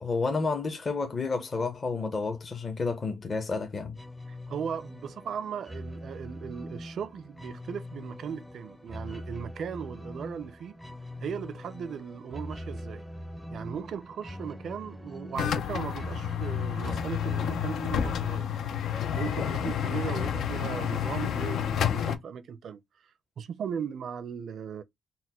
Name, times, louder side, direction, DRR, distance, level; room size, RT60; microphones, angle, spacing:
voice 1, 0.0-3.9, left 4 dB, 35° left, 0.8 m, -30 dB
sound 1, 3.9-19.4, equal, 5° left, 0.6 m, -42 dB
voice 2, 4.3-10.8 11.2-13.0 13.5-18.5 19.2-22.8 23.4-24.8, right 7 dB, 60° right, 0.5 m, -37 dB
sound 2, 15.4-22.2, left 9 dB, 70° left, 0.5 m, -30 dB
4.2 x 2.2 x 4.2 m
cardioid pair, 115°, 0 cm